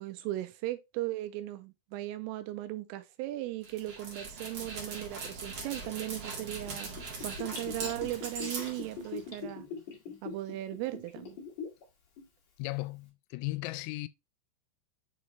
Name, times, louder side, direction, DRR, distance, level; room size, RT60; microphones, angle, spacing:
voice 1, 0.0-6.9 7.2-9.7 10.2-11.4, right 15 dB, 85° right, 3.1 m, -37 dB
Dog, 3.6-9.4, right 4 dB, 50° right, 1.8 m, -41 dB
Gurgling / Bathtub (filling or washing), 6.7-11.8 12.2-12.3, left 5 dB, 50° left, 2.2 m, -42 dB
voice 2, 12.6-14.1, left 21 dB, 85° left, 3.3 m, -36 dB
7.5 x 4.5 x 3.1 m
omnidirectional pair, 6.0 m